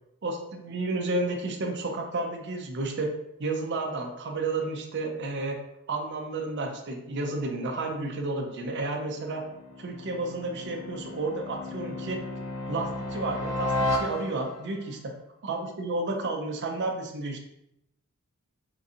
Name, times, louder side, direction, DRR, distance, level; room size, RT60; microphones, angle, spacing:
voice 1, 0.2-3.1 3.4-5.6 5.9-9.4 9.8-12.2 12.7-15.0 15.4-17.4, right 2 dB, 50° right, 2 dB, 0.5 m, -31 dB
sound 1, 8.3-14.7, left 1 dB, 75° left, 0.5 m, -34 dB
3.7 x 2.6 x 2.7 m, 0.82 s
head